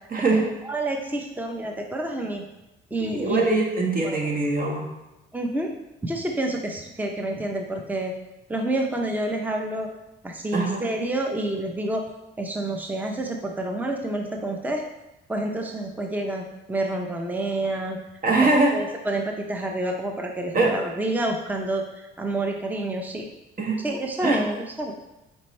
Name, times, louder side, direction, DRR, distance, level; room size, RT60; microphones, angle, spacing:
voice 1, 0.1-0.4 3.0-4.9 10.5-10.8 18.2-18.8 20.5-20.8 23.6-23.8 24.2-24.4, right 3 dB, 45° right, 0 dB, 1.6 m, -22 dB
voice 2, 0.6-2.4 2.9-3.4 4.0-4.3 5.3-5.7 6.0-8.1 8.5-9.9 10.2-12.0 12.4-14.8 15.3-18.0 18.4-23.3 23.8-24.9, right 1 dB, 10° right, 2 dB, 0.7 m, -28 dB
7.4 x 4.5 x 3.3 m, 0.94 s
cardioid pair, 90°, 20 cm